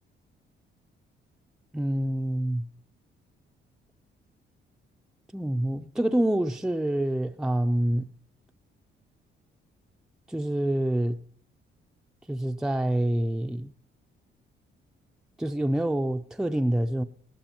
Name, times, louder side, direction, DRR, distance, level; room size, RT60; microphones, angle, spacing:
voice 1, 1.7-2.6 5.3-8.1 10.3-11.2 12.3-13.7 15.4-17.0, right 1 dB, 5° right, 0.5 m, -26 dB
19.5 x 17.5 x 2.9 m
cardioid pair, 90°, 20 cm